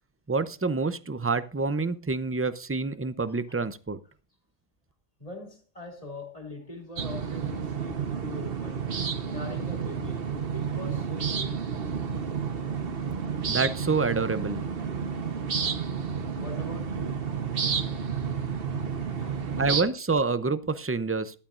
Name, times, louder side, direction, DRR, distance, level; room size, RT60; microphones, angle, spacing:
voice 1, 0.3-4.0 13.5-14.6 19.6-21.4, right 4 dB, 20° right, 0.4 m, -27 dB
voice 2, 5.2-8.8 9.3-10.3 10.5-11.6 16.4-17.3 19.2-19.7, left 2 dB, 30° left, 2.9 m, -42 dB
sound 1, 7.0-19.8, right 6 dB, 55° right, 1.3 m, -31 dB
14.5 x 12.0 x 2.5 m
omnidirectional pair, 1.2 m